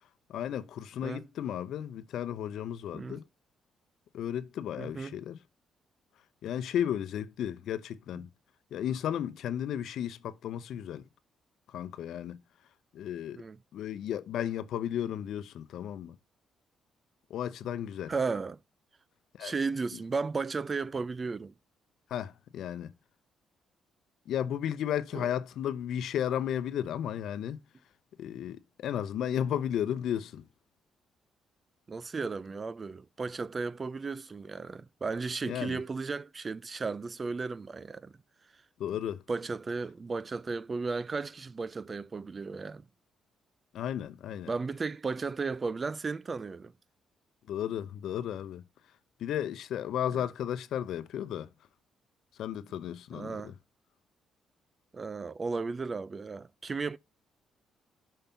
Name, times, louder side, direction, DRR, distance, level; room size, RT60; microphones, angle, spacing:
voice 1, 0.3-3.2 4.1-5.4 6.4-8.3 8.7-11.0 11.7-12.4 12.9-13.4 13.7-16.1 17.3-18.1 19.4-19.5 22.1-22.9 24.3-27.6 28.2-30.4 35.4-35.8 38.8-39.2 43.7-44.5 47.5-48.6 49.2-51.5 52.4-53.5, left 10 dB, 75° left, 0.7 m, -34 dB
voice 2, 4.8-5.2 13.3-13.6 18.1-18.6 19.4-21.5 25.1-25.3 31.9-38.1 39.3-42.8 44.5-46.7 53.1-53.5 54.9-57.0, right 4 dB, 35° right, 0.4 m, -34 dB
5.5 x 5.3 x 5.7 m
cardioid pair, 90°, 0 cm